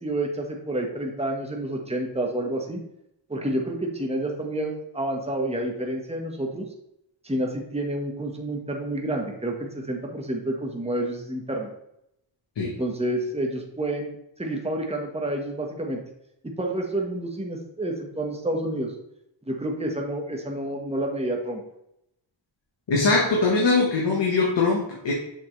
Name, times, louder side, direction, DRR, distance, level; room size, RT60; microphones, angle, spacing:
voice 1, 0.0-2.8 3.3-6.7 7.2-11.7 12.6-16.0 16.6-18.9 19.5-21.6, right 1 dB, 15° right, 1 dB, 1.5 m, -29 dB
voice 2, 22.9-25.1, left 3 dB, 70° left, -2 dB, 1.6 m, -21 dB
7.2 x 5.8 x 3.4 m, 0.80 s
cardioid pair, 75°, 45 cm